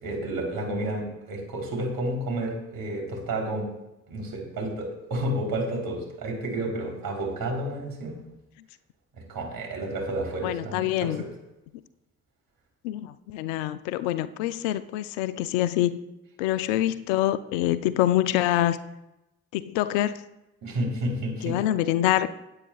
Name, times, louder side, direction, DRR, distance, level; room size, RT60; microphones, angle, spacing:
voice 1, 0.0-3.7 4.1-8.2 9.1-11.3 20.6-21.6, right 1 dB, 65° right, 0 dB, 3.5 m, -31 dB
voice 2, 10.4-11.2 12.8-16.0 16.4-18.8 19.5-20.2 21.4-22.3, left 13 dB, 80° left, 14 dB, 0.5 m, -25 dB
17.5 x 8.5 x 2.4 m, 0.94 s
hypercardioid pair, 40°, 38 cm